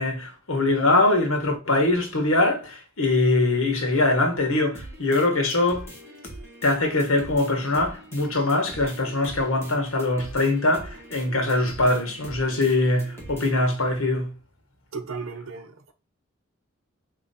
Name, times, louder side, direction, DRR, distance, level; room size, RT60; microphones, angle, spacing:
voice 1, 0.0-5.9 6.6-14.3, left 2 dB, 80° left, 1.4 m, -22 dB
sound 1, 4.7-13.7, right 1 dB, 10° left, 1.8 m, -42 dB
voice 2, 14.9-15.9, right 4 dB, 80° right, 0.8 m, -35 dB
4.1 x 3.1 x 4.1 m
head